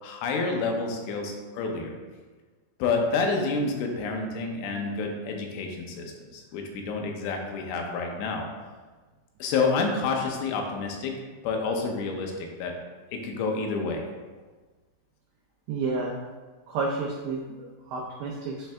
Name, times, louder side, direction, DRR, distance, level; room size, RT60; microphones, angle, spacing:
voice 1, 0.0-2.0 2.8-8.5 9.4-12.7 13.1-14.1, left 4 dB, 85° left, 2 dB, 2.9 m, -29 dB
voice 2, 15.7-16.1 16.7-18.7, right 3 dB, 85° right, -2 dB, 2.0 m, -31 dB
8.5 x 3.3 x 3.4 m, 1.3 s
omnidirectional pair, 4.9 m